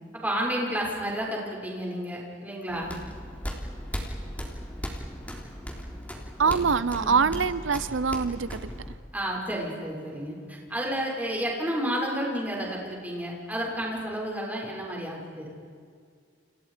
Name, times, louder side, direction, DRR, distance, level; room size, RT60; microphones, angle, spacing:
voice 1, 0.2-3.0 6.4-6.7 7.0-7.3 9.1-15.5, equal, 10° right, -2 dB, 6.5 m, -31 dB
sound 1, 2.7-8.9, equal, 10° left, 3.4 m, -37 dB
voice 2, 6.4-8.7, right 5 dB, 90° right, 15 dB, 0.7 m, -24 dB
30.0 x 29.5 x 5.2 m, 2.2 s
head